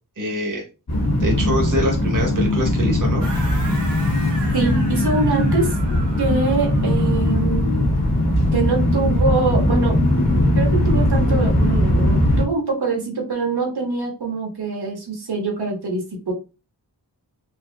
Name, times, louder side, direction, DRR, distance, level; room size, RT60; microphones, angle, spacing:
voice 1, 0.2-0.6 1.2-3.3, equal, 50° right, 0 dB, 1.3 m, -24 dB
sound 1, 0.9-12.4, left 1 dB, 65° left, 1.4 m, -19 dB
sound 2, 3.2-7.6, right 2 dB, 85° right, 1.9 m, -36 dB
voice 2, 4.5-5.8 6.2-7.7 8.5-10.0 10.5-16.3, right 3 dB, 65° right, 1 dB, 1.6 m, -24 dB
4.4 x 2.8 x 2.4 m, 0.30 s
wide cardioid pair, 60°, 41 cm